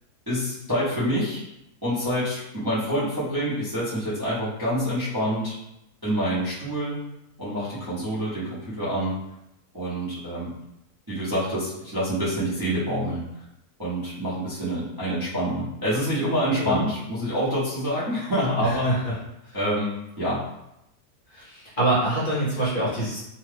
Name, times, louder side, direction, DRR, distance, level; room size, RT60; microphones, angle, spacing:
voice 1, 0.3-1.4 1.8-5.5 6.0-7.0 7.4-9.1 9.7-10.5 11.1-13.2 13.8-18.9 19.5-20.4, equal, 25° right, -11 dB, 0.5 m, -27 dB
voice 2, 18.6-19.1 19.4-19.6 21.3-23.2, right 2 dB, 40° left, -9 dB, 0.9 m, -25 dB
2.8 x 2.3 x 3.3 m, 0.86 s
omnidirectional pair, 1.7 m